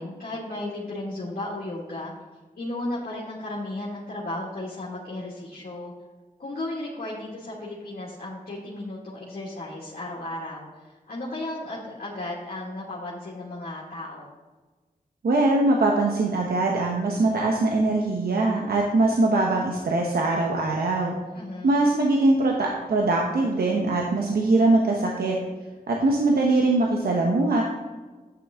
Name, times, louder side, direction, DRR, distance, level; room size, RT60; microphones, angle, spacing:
voice 1, 0.0-2.1 2.5-5.9 6.4-14.3 21.3-21.8, left 2 dB, 70° left, -7 dB, 2.3 m, -34 dB
voice 2, 15.2-21.1 21.6-25.4 25.9-27.6, right 2 dB, 90° right, -1 dB, 1.1 m, -22 dB
11.0 x 9.2 x 3.7 m, 1.3 s
cardioid pair, 55°, 15 cm